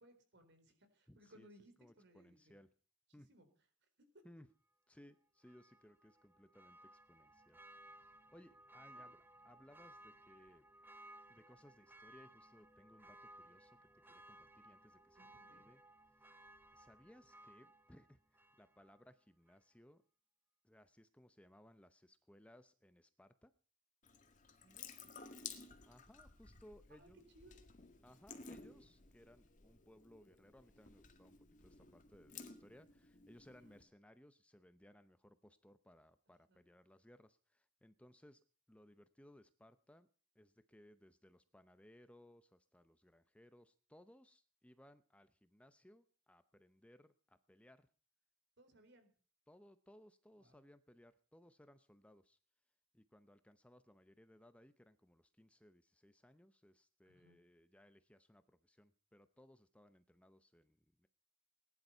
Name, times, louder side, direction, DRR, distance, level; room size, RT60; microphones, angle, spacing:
voice 1, 0.0-2.6 3.1-3.5 4.1-4.2 8.9-9.1 15.2-15.7 24.6-25.2 26.9-27.7 33.5-33.8 36.5-36.6 48.6-49.1 50.4-50.6 57.1-57.4, equal, 60° right, 8 dB, 4.0 m, -65 dB
voice 2, 1.1-1.5 1.8-2.7 3.1-3.3 4.2-4.5 4.9-7.6 7.9-10.7 11.3-13.8 14.1-15.2 15.5-15.8 16.2-16.3 16.7-20.0 20.6-23.5 25.8-27.2 28.0-38.4 38.7-40.1 40.3-47.9 49.5-52.4 52.9-61.1, left 1 dB, 5° left, 11 dB, 0.7 m, -64 dB
Church bell, 5.4-19.1 19.5-19.6, right 1 dB, 10° right, 1.0 m, -61 dB
Water tap faucet / Sink (filling or washing) / Drip, 24.0-33.8, left 5 dB, 40° left, 1.9 m, -56 dB
19.5 x 11.0 x 5.5 m, 0.41 s
head